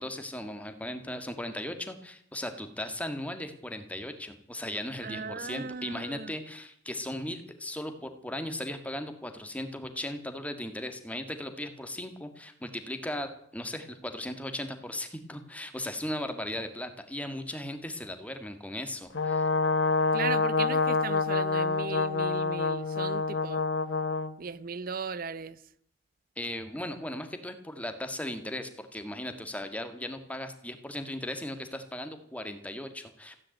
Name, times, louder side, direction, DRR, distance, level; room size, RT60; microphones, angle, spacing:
voice 1, 0.0-19.5 26.4-33.4, left 1 dB, 10° left, 1.9 m, -37 dB
voice 2, 5.0-6.3 20.1-23.6 24.4-25.6, right 5 dB, 50° right, 0.6 m, -37 dB
Brass instrument, 19.1-24.3, left 4 dB, 75° left, 1.1 m, -27 dB
16.0 x 10.0 x 9.2 m
head